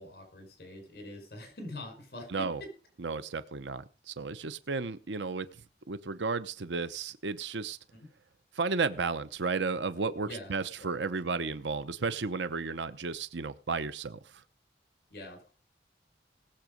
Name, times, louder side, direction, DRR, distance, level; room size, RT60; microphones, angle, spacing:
voice 1, 0.0-2.7 7.9-8.1 10.2-10.5 10.8-11.0 15.1-15.5, left 1 dB, 60° left, 5 dB, 4.9 m, -44 dB
voice 2, 2.3-2.6 3.0-5.5 5.9-7.8 8.5-14.4, right 4 dB, 90° right, 13 dB, 0.8 m, -33 dB
19.0 x 7.3 x 5.2 m, 0.36 s
head